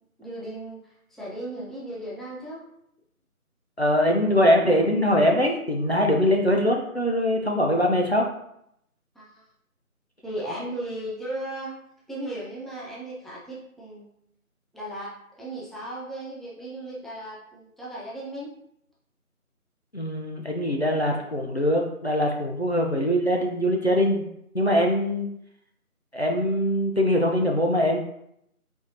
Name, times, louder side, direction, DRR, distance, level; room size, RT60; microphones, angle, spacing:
voice 1, 0.2-0.8 1.1-2.6 4.6-4.7 9.1-9.4 10.2-11.7 12.1-14.1 14.7-15.1 15.4-18.5, right 1 dB, ahead, -7 dB, 0.6 m, -36 dB
voice 2, 3.8-8.3 19.9-24.3 24.5-25.3 26.1-28.0, equal, 45° left, 1 dB, 0.5 m, -22 dB
4.5 x 4.2 x 2.6 m, 0.75 s
figure-of-eight pair, 180°, 44 cm